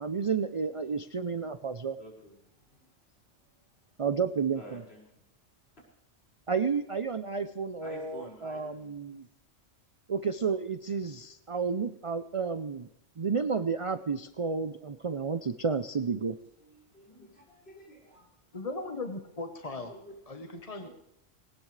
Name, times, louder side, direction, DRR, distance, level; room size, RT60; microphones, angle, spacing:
voice 1, 0.0-2.0 4.0-4.8 6.5-9.3 10.1-12.9 13.2-16.4, right 5 dB, 40° right, 10 dB, 0.4 m, -31 dB
voice 2, 2.0-3.2 4.5-5.2 5.8-5.9 7.8-9.2 16.6-18.3 19.7-20.1 20.8-20.9, right 1 dB, 55° left, -3 dB, 5.5 m, -51 dB
voice 3, 18.5-19.9 20.3-20.9, left 3 dB, 30° left, 5 dB, 1.1 m, -38 dB
20.0 x 19.0 x 3.3 m, 0.82 s
omnidirectional pair, 1.2 m